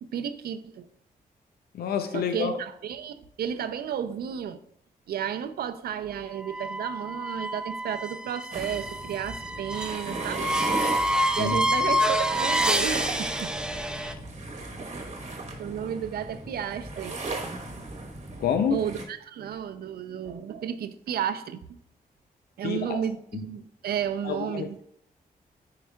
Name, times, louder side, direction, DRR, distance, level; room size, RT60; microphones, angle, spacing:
voice 1, 0.0-0.9 2.1-4.6 5.1-10.5 11.4-13.5 15.3-15.4 15.6-17.2 18.7-21.8 22.6-24.8, right 9 dB, 80° right, 10 dB, 0.5 m, -32 dB
voice 2, 1.7-2.5 11.4-11.6 18.4-18.8 22.6-23.0 23.3-23.4 24.2-24.8, left 7 dB, 80° left, 7 dB, 0.5 m, -28 dB
sound 1, 6.4-14.1, equal, 5° right, 0.5 m, -28 dB
sound 2, 8.5-19.0, right 2 dB, 45° right, 1.2 m, -36 dB
9.4 x 4.8 x 2.3 m, 0.70 s
cardioid pair, 75°, 16 cm